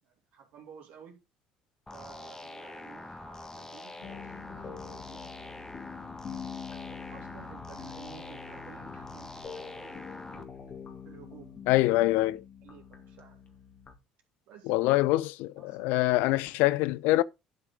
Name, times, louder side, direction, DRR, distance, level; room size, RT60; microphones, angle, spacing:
voice 1, 0.0-1.2 1.9-5.3 5.9-10.6 11.0-11.5 12.6-13.6 14.5-15.0 15.6-15.8, right 8 dB, 60° right, 3.0 m, -53 dB
sound 1, 1.9-10.4, left 2 dB, 15° left, 1.6 m, -45 dB
sound 2, 4.0-13.9, left 7 dB, 40° left, 2.2 m, -45 dB
voice 2, 11.7-12.4 14.7-17.2, left 18 dB, 65° left, 0.4 m, -25 dB
11.5 x 5.7 x 3.8 m
figure-of-eight pair, 55°, 3 cm